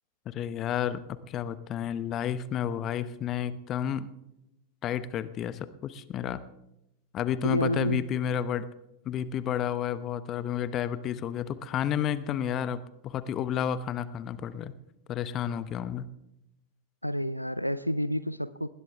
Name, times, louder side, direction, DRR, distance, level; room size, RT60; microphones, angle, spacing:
voice 1, 0.3-4.1 4.8-6.4 7.1-8.7 9.0-14.7 15.1-16.1, left 9 dB, 30° left, 15 dB, 0.9 m, -31 dB
voice 2, 7.4-8.0 17.0-18.7, left 1 dB, 90° left, 16 dB, 0.5 m, -29 dB
20.0 x 18.0 x 3.5 m, 0.87 s
figure-of-eight pair, 90°, 0 cm